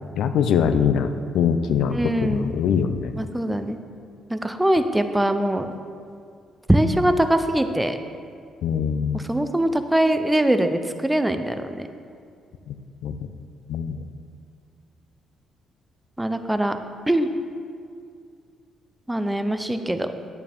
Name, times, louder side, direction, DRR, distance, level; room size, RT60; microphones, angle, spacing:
voice 1, 0.2-3.1 8.6-9.3 12.7-12.8 13.0-13.3 13.7-14.0, left 7 dB, 80° left, 10 dB, 0.5 m, -23 dB
voice 2, 1.9-2.5 3.2-3.8 4.3-5.7 6.7-8.0 9.1-11.9 16.2-16.8 17.1-17.3 19.1-20.1, right 1 dB, 10° right, 8 dB, 0.6 m, -22 dB
11.0 x 9.1 x 3.6 m, 2.3 s
cardioid pair, 90°, 0 cm